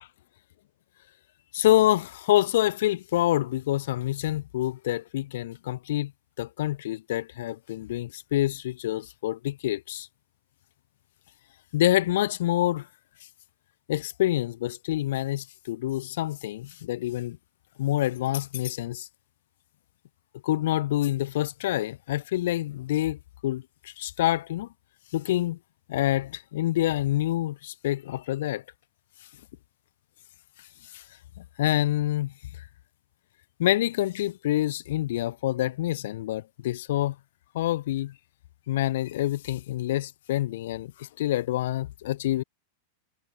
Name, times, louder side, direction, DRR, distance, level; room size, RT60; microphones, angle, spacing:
voice 1, 1.5-6.1 6.4-10.1 11.7-12.9 13.9-17.4 17.8-19.1 20.4-24.7 25.1-25.6 25.9-28.6 30.9-31.0 31.4-32.7 33.6-37.2 37.5-38.1 38.7-42.4, left 14 dB, 55° left, 0.7 m, -27 dB
figure-of-eight pair, 90°, 0 cm